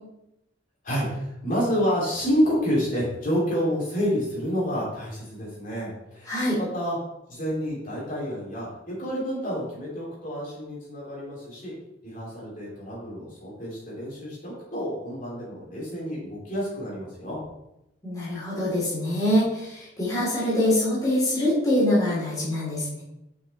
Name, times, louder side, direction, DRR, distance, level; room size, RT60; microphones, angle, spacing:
voice 1, 0.8-7.0 7.3-11.7 12.0-17.4, equal, 50° left, -6 dB, 2.9 m, -29 dB
voice 2, 6.3-6.6 18.0-23.0, left 1 dB, 20° left, -8 dB, 2.8 m, -24 dB
6.2 x 5.8 x 4.2 m, 0.87 s
head